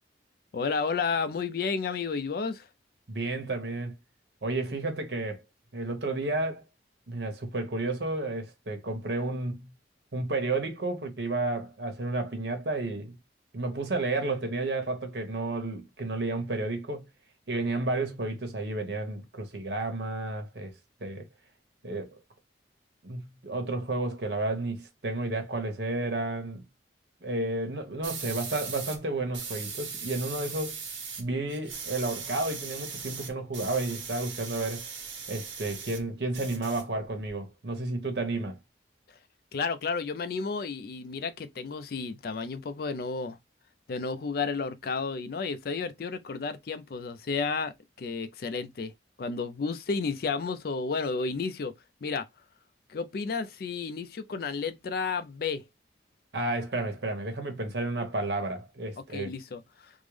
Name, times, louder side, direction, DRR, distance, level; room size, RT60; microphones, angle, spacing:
voice 1, 0.5-2.7 39.5-43.4 43.9-48.9 49.2-51.7 52.0-52.3 52.9-55.6 59.0-59.9, left 4 dB, 55° left, 0.4 m, -32 dB
voice 2, 3.1-3.9 4.4-5.4 5.7-6.6 7.1-9.7 10.1-13.2 13.5-17.1 17.5-20.7 21.0-21.3 21.8-22.2 23.0-26.6 27.2-30.8 31.2-34.9 35.3-38.6 56.3-59.3, right 2 dB, 65° right, 0.9 m, -31 dB
sound 1, 28.0-29.0 29.3-31.2 31.5-36.0 36.3-37.3, right 6 dB, 90° right, 1.1 m, -39 dB
3.6 x 2.0 x 3.1 m
head